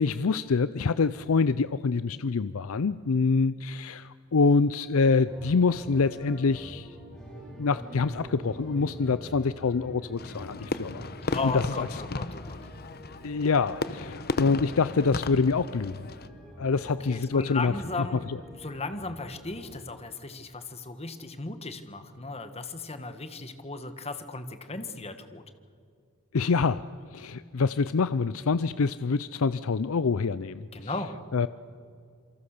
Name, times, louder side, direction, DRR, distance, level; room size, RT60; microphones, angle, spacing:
voice 1, 0.0-7.0 7.6-11.1 11.4-11.9 13.2-16.1 16.6-18.4 26.3-26.8 27.1-30.9 31.3-31.5, left 4 dB, 65° left, 15 dB, 0.5 m, -26 dB
sound 1, 5.1-19.7, equal, 5° left, 7.6 m, -46 dB
Fireworks, 10.2-16.3, left 3 dB, 45° left, 0.9 m, -35 dB
voice 2, 11.3-12.6 16.9-18.2 18.5-25.4 30.7-31.1, left 3 dB, 30° left, 9 dB, 1.6 m, -36 dB
27.5 x 24.5 x 6.7 m, 2.3 s
head